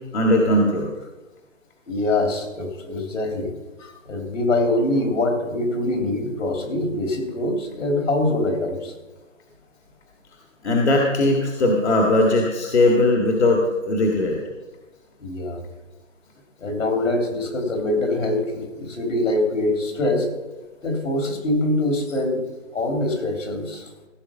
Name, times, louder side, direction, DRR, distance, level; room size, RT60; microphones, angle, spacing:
voice 1, 0.1-0.9 10.6-14.4, left 1 dB, 55° left, 0 dB, 1.9 m, -19 dB
voice 2, 1.9-3.5 3.8-8.9 15.2-15.6 16.6-20.3 20.8-22.5 22.7-23.8, left 2 dB, 75° left, 3 dB, 3.6 m, -24 dB
16.0 x 6.7 x 5.4 m, 1.1 s
hypercardioid pair, 175°, 39 cm